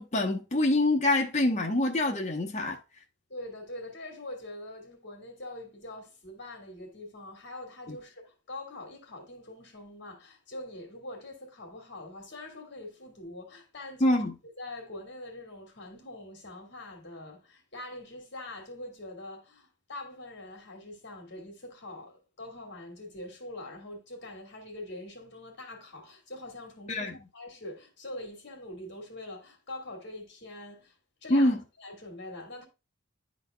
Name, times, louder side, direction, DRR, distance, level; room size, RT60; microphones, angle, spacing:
voice 1, 0.0-2.8 14.0-14.3 26.9-27.1 31.3-31.6, left 1 dB, 35° left, 0.8 m, -25 dB
voice 2, 3.3-32.7, left 1 dB, 60° left, 2.2 m, -44 dB
11.0 x 4.1 x 2.2 m
head